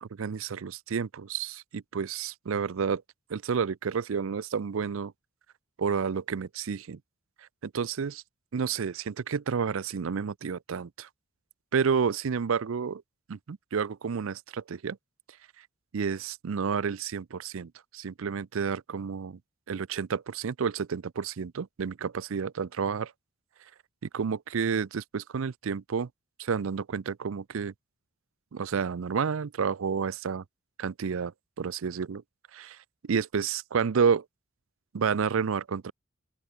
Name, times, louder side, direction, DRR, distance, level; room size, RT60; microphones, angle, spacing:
voice 1, 0.0-3.0 3.3-5.1 5.8-7.0 7.6-8.2 8.5-11.1 11.7-13.0 13.3-15.0 15.9-19.4 19.7-23.1 24.0-26.1 26.4-27.7 28.5-30.4 30.8-32.2 32.5-32.8 33.0-34.3 34.9-35.9, right 6 dB, 70° right, 0.5 m, -30 dB
open air
head